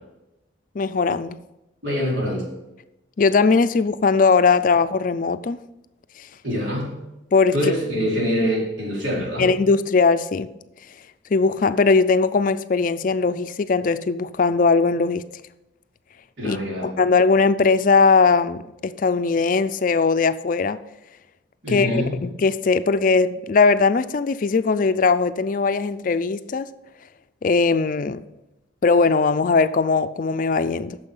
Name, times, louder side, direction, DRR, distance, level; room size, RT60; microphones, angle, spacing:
voice 1, 0.8-1.4 3.2-5.6 7.3-7.5 8.0-8.1 9.4-10.5 11.3-15.2 16.4-20.8 21.7-26.7 27.4-28.2 28.8-31.0, left 4 dB, 45° left, 12 dB, 0.4 m, -19 dB
voice 2, 1.8-2.4 6.4-6.9 7.5-9.5 16.4-16.9 21.6-22.1, equal, 85° right, -4 dB, 4.0 m, -24 dB
9.5 x 6.9 x 5.4 m, 0.95 s
head